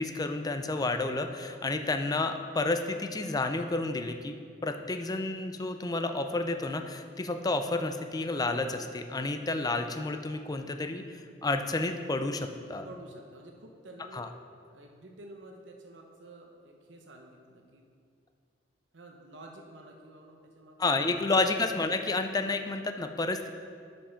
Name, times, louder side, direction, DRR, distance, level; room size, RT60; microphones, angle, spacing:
voice 1, 0.0-4.4 4.6-12.9 14.1-14.3 20.8-23.5, left 2 dB, 20° left, 7 dB, 0.4 m, -30 dB
voice 2, 12.8-14.3 14.7-17.8 18.9-20.8, right 1 dB, 75° right, 1 dB, 0.9 m, -50 dB
8.6 x 5.4 x 5.7 m, 2.2 s
head